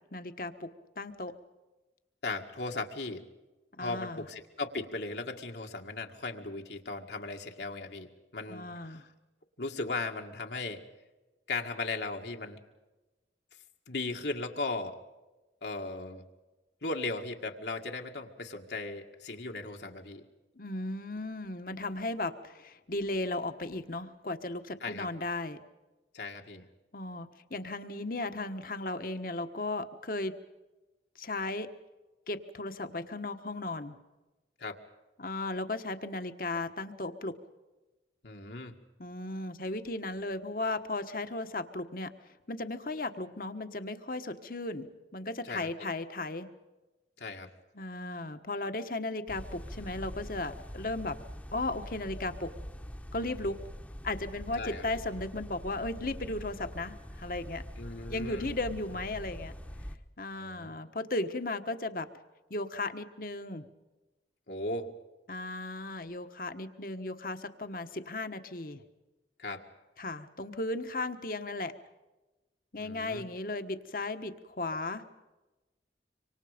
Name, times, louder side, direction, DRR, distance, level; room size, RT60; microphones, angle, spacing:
voice 1, 0.1-1.3 3.7-4.3 8.5-9.1 20.6-25.6 26.9-30.3 31.1-31.7 32.3-34.0 35.2-37.4 39.0-42.1 42.5-46.5 47.7-51.2 51.5-52.5 53.1-53.6 54.0-57.6 58.1-59.5 60.2-62.1 62.5-63.7 65.3-68.8 70.0-71.7 72.7-75.1, left 2 dB, 50° left, 8 dB, 1.4 m, -36 dB
voice 2, 2.2-3.2 3.8-9.0 9.6-10.8 11.5-12.6 13.9-15.0 15.6-16.2 16.8-20.3 24.8-25.1 26.1-26.7 34.6-34.8 38.2-38.7 45.4-45.7 47.2-47.5 54.6-54.8 57.8-58.5 60.4-60.7 64.5-64.9 69.4-69.6 72.8-73.2, left 3 dB, 70° left, 2 dB, 2.0 m, -37 dB
sound 1, 49.3-60.0, equal, 10° left, 1.1 m, -44 dB
26.0 x 25.5 x 5.2 m, 1.1 s
head